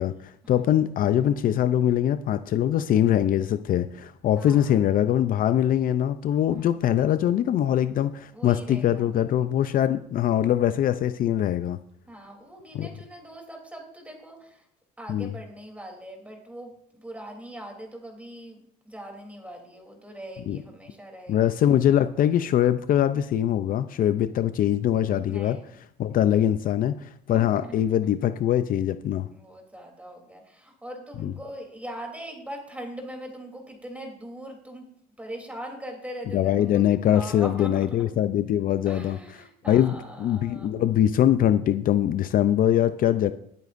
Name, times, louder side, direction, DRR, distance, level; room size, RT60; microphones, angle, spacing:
voice 1, 0.0-11.8 12.7-12.9 15.1-15.3 20.5-20.6 21.3-25.6 26.0-29.3 31.2-31.3 36.3-39.2 39.7-43.3, left 11 dB, 55° left, 12 dB, 0.5 m, -23 dB
voice 2, 4.4-4.8 6.5-6.7 8.3-9.1 12.1-14.6 15.0-21.5 25.2-25.7 27.3-27.9 29.2-34.9 35.2-38.1 38.8-40.7, right 1 dB, 10° right, 1 dB, 3.2 m, -41 dB
21.5 x 8.3 x 2.6 m, 0.70 s
cardioid pair, 110°, 17 cm